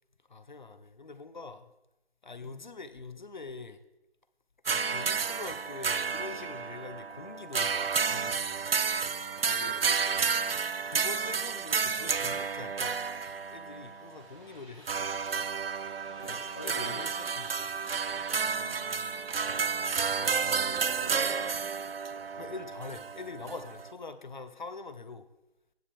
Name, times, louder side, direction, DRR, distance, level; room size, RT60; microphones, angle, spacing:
voice 1, 0.3-1.7 2.2-3.8 4.7-8.6 10.8-13.1 13.5-15.0 16.2-17.8 20.2-20.7 22.4-25.3, left 4 dB, 45° left, 11 dB, 0.8 m, -44 dB
sound 1, 4.6-14.1 14.9-23.9, right 5 dB, 60° right, 0.6 m, -31 dB
voice 2, 9.5-10.3 16.1-17.0 18.4-19.3 20.5-22.0, left 1 dB, 20° left, 2 dB, 0.9 m, -47 dB
sound 2, 12.4-19.2, right 1 dB, 30° right, 3.1 m, -57 dB
15.0 x 8.8 x 3.4 m, 0.93 s
figure-of-eight pair, 165°, 32 cm